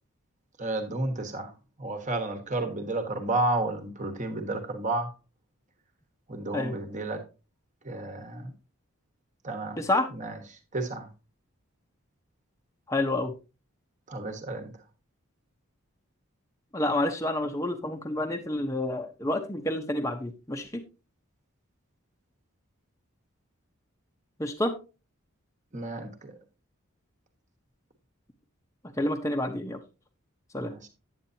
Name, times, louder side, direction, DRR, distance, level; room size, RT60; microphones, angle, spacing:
voice 1, 0.6-1.5 1.8-5.1 6.3-7.2 7.8-8.5 9.4-9.8 10.1-10.4 10.7-11.1 14.1-14.7 25.7-26.3 30.6-30.9, right 2 dB, 35° right, 1.3 m, -31 dB
voice 2, 9.8-10.1 12.9-13.3 16.7-20.8 24.4-24.8 29.0-29.8 30.5-30.7, left 1 dB, 15° left, 0.8 m, -29 dB
9.2 x 8.0 x 2.8 m
head